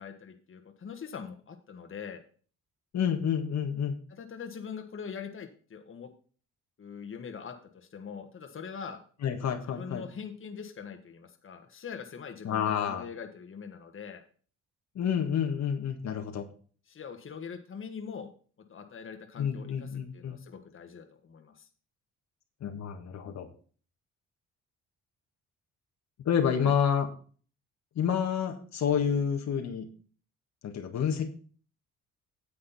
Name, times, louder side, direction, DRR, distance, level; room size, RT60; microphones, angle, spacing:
voice 1, 0.0-2.2 4.1-6.1 6.8-9.0 9.6-14.2 16.9-18.3 18.7-21.7 26.6-26.7, left 6 dB, 45° left, 5 dB, 1.6 m, -43 dB
voice 2, 2.9-3.9 9.2-10.0 12.4-13.1 14.9-16.5 19.4-20.4 22.6-23.5 26.2-27.1 27.9-29.9 30.6-31.3, left 8 dB, 65° left, 4 dB, 1.6 m, -29 dB
10.0 x 7.6 x 4.2 m, 0.41 s
cardioid pair, 90°, 30 cm